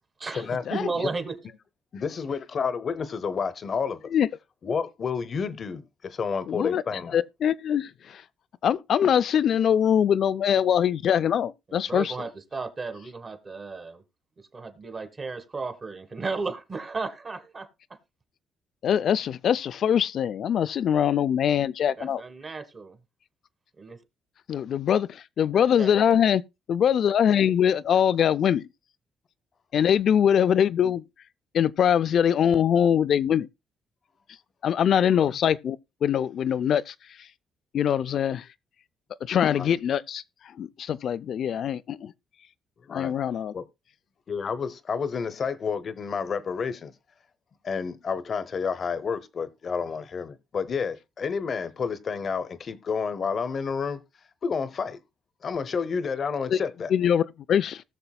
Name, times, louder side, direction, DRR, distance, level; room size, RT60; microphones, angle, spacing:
voice 1, 0.2-1.3 11.7-14.0 14.5-17.7 22.0-23.0 23.8-24.0 25.8-26.0, right 4 dB, 35° right, 1.6 m, -34 dB
voice 2, 1.9-4.0 4.6-7.2 35.1-35.4 39.5-39.7 42.9-43.1 43.5-43.6 44.3-46.9 47.6-54.0 54.4-55.0 55.4-56.9, left 5 dB, 50° left, 0.8 m, -30 dB
voice 3, 6.5-6.8 7.1-8.2 8.6-12.1 18.8-22.2 24.5-26.4 26.7-28.6 29.7-31.0 31.5-33.5 34.6-36.9 37.7-38.4 39.2-40.2 40.6-42.1 42.9-43.5 56.5-56.6 56.9-57.8, left 9 dB, 65° left, 0.4 m, -23 dB
19.0 x 6.7 x 2.3 m
cardioid pair, 90°, 0 cm